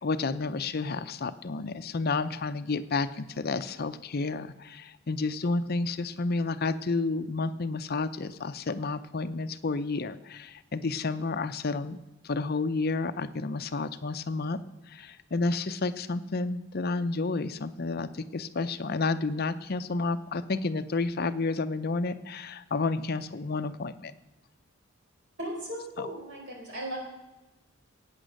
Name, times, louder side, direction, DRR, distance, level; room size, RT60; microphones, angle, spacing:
voice 1, 0.0-12.0 12.2-14.6 14.9-24.1 26.0-26.1, left 3 dB, 50° left, 12 dB, 0.6 m, -31 dB
voice 2, 25.4-27.0, equal, 55° right, -1 dB, 4.6 m, -37 dB
16.5 x 9.0 x 6.5 m, 1.0 s
head